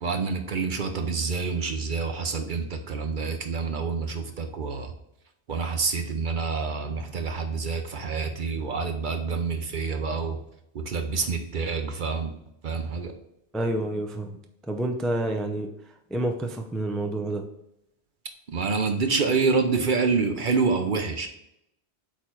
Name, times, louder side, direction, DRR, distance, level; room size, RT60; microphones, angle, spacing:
voice 1, 0.0-4.9 5.5-10.4 10.7-12.3 12.6-13.1 18.5-21.3, right 4 dB, 55° right, 5 dB, 0.8 m, -27 dB
voice 2, 13.5-14.4 14.7-15.7 16.1-17.4, right 1 dB, ahead, 4 dB, 0.4 m, -28 dB
8.3 x 3.1 x 4.6 m, 0.81 s
omnidirectional pair, 1.1 m